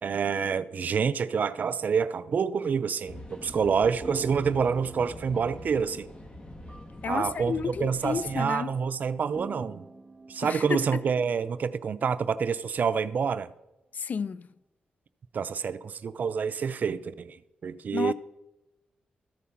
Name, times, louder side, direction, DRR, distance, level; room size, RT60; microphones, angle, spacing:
voice 1, 0.0-6.1 7.1-9.9 10.3-13.5 15.3-17.4 17.6-18.1, right 6 dB, 60° right, 0.4 m, -27 dB
sound 1, 3.1-8.4, left 1 dB, 30° left, 1.1 m, -44 dB
sound 2, 4.0-12.5, right 2 dB, 25° right, 1.3 m, -47 dB
voice 2, 7.0-8.7 10.4-10.8 13.9-14.5 17.9-18.1, left 6 dB, 55° left, 0.3 m, -31 dB
13.5 x 4.7 x 5.7 m
cardioid pair, 70°, 3 cm